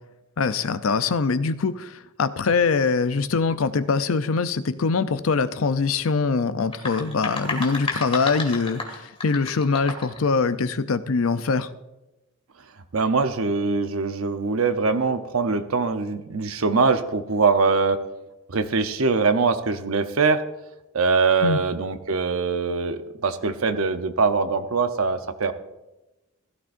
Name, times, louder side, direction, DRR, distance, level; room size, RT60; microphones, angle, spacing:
voice 1, 0.4-11.7 21.4-21.6, left 4 dB, 75° left, 12 dB, 0.6 m, -23 dB
sound 1, 6.6-10.2, left 3 dB, 25° left, 2.2 m, -32 dB
voice 2, 12.9-18.0 18.5-20.4 20.9-25.5, right 4 dB, 80° right, 9 dB, 0.8 m, -22 dB
16.0 x 13.5 x 2.6 m, 1.0 s
head